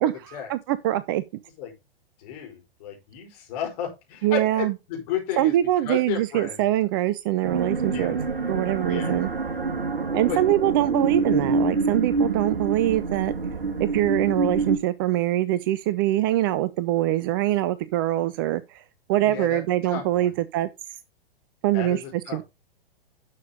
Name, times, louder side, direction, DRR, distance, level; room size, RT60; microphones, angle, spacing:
voice 1, 0.0-1.2 4.2-4.7 5.4-8.2 8.5-9.3 10.1-13.3 13.8-18.8 19.1-20.7 21.6-22.4, right 14 dB, 25° right, 0.4 m, -24 dB
voice 2, 2.2-5.5 5.8-6.7 7.9-8.1 8.9-9.1 10.3-10.4 19.2-20.3 21.7-22.4, left 9 dB, 40° left, 4.7 m, -33 dB
sound 1, 7.4-14.8, right 4 dB, 70° right, 1.7 m, -26 dB
10.5 x 6.7 x 3.8 m
figure-of-eight pair, 105°, 29 cm